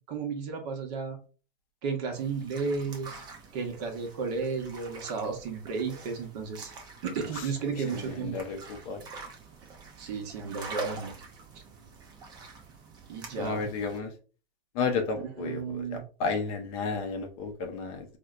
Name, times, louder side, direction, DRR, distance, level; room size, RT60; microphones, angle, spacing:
voice 1, 0.1-1.2 1.8-3.2 3.5-6.7 7.0-8.4 10.0-11.1 13.1-13.7 15.1-16.0, right 5 dB, 40° right, 4 dB, 0.9 m, -33 dB
sound 1, 2.1-14.0, right 4 dB, 15° right, 0.5 m, -45 dB
voice 2, 8.2-8.6 8.9-9.0 13.4-14.1 14.8-18.1, left 4 dB, 35° left, 5 dB, 0.6 m, -32 dB
4.2 x 2.1 x 2.4 m, 0.37 s
hypercardioid pair, 135°, 31 cm